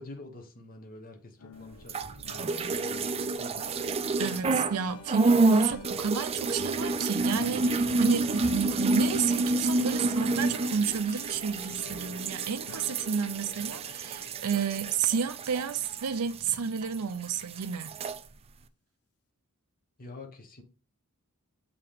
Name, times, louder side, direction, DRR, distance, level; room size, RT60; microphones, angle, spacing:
voice 1, 0.0-3.6 20.0-20.6, left 2 dB, 40° left, 1.0 m, -47 dB
sound 1, 1.4-16.5 16.9-17.2 17.5-17.7, left 3 dB, 75° left, 0.6 m, -49 dB
sound 2, 1.8-4.8 5.1-17.0 17.2-18.2, right 3 dB, 25° right, 0.4 m, -29 dB
voice 2, 4.2-17.9, right 6 dB, 90° right, 0.5 m, -31 dB
7.2 x 2.9 x 4.9 m
head